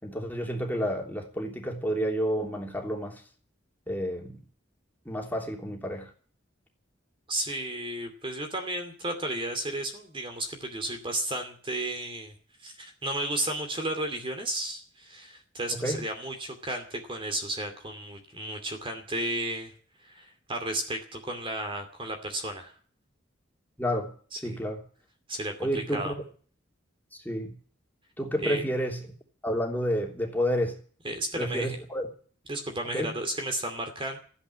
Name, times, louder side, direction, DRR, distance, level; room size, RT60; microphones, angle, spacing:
voice 1, 0.0-3.2 3.9-4.4 5.0-6.1 15.7-16.0 23.8-24.1 24.4-24.8 25.6-26.2 27.2-27.5 28.2-29.1 29.4-30.8 31.3-32.1 32.9-33.1, equal, 10° left, 0 dB, 3.2 m, -30 dB
voice 2, 7.3-12.3 12.6-19.7 20.1-22.7 24.3-24.6 25.3-26.1 28.4-28.6 31.0-31.8 32.5-34.2, right 1 dB, 30° right, 5 dB, 2.5 m, -33 dB
14.5 x 10.0 x 9.5 m, 0.43 s
head